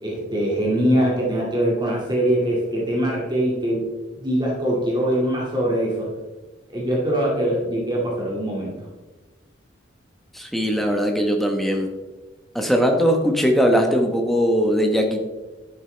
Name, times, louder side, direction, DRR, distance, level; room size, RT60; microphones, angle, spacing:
voice 1, 0.0-3.8 4.1-6.1 6.7-8.7, right 1 dB, 20° right, -3 dB, 2.1 m, -22 dB
voice 2, 10.3-11.9 12.5-15.2, equal, ahead, 2 dB, 1.1 m, -20 dB
11.0 x 8.9 x 3.3 m, 1.2 s
head